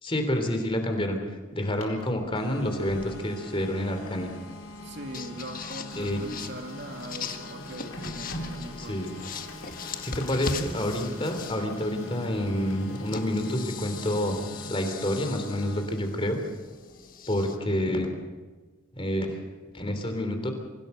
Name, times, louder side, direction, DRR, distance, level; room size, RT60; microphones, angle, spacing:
voice 1, 0.0-1.2 1.5-4.3 6.0-6.2 8.8-9.1 10.0-14.4 14.7-16.4 17.3-18.1 18.9-19.4 19.7-20.5, left 1 dB, 25° left, 5 dB, 3.2 m, -28 dB
Printer, 1.5-17.3, equal, 75° left, 4.5 m, -44 dB
sound 1, 2.4-15.9, left 2 dB, 90° left, 2.7 m, -45 dB
sound 2, 2.4-3.0 4.8-4.9 5.1-8.8 9.1-11.9 12.7-17.6, left 5 dB, 40° left, 1.6 m, -40 dB
voice 2, 4.8-9.0, right 1 dB, 55° right, 4 dB, 2.2 m, -41 dB
25.0 x 16.5 x 6.8 m, 1.3 s
head